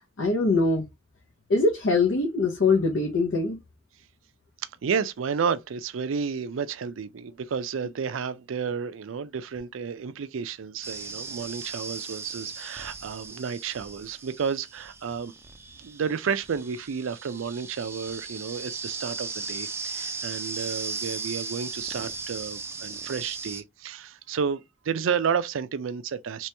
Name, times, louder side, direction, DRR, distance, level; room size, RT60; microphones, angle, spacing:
voice 1, 0.2-0.9 1.5-3.6, left 3 dB, 75° left, 0.8 m, -23 dB
voice 2, 4.8-15.3 15.8-26.5, right 6 dB, 75° right, 0.4 m, -31 dB
sound 1, 10.8-23.6, right 4 dB, 15° right, 0.4 m, -37 dB
3.0 x 2.9 x 3.3 m
head